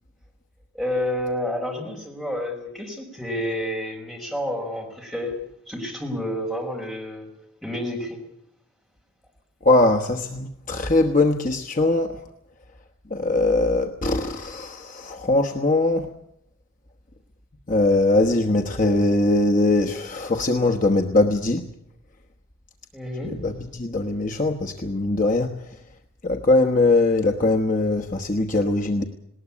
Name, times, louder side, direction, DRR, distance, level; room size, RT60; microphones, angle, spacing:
voice 1, 0.7-5.3 5.7-7.3 7.6-8.2 22.9-23.4, left 1 dB, ahead, -1 dB, 5.1 m, -29 dB
voice 2, 9.6-12.2 13.1-16.1 17.7-21.7 23.2-25.6 26.2-29.0, left 2 dB, 40° left, 3 dB, 1.1 m, -21 dB
19.5 x 19.0 x 8.5 m, 0.75 s
head